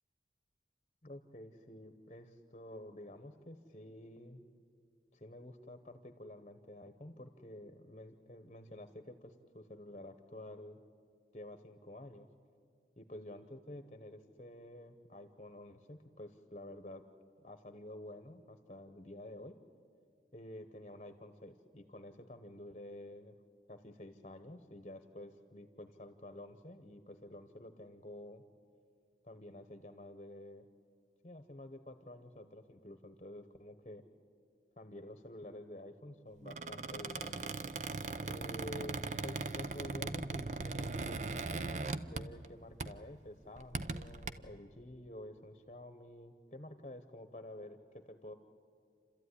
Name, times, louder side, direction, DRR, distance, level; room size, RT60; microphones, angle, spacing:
voice 1, 1.0-4.4 5.1-10.8 11.3-12.3 13.0-17.0 17.4-19.6 20.3-23.3 23.7-28.4 29.2-30.6 31.2-34.0 34.8-37.5 38.2-48.3, left 1 dB, 35° left, 8 dB, 1.0 m, -50 dB
Squeak, 36.4-42.5 42.8-43.1 43.6-44.3, right 3 dB, 40° right, 0.7 m, -39 dB
29.0 x 13.5 x 9.8 m, 2.2 s
head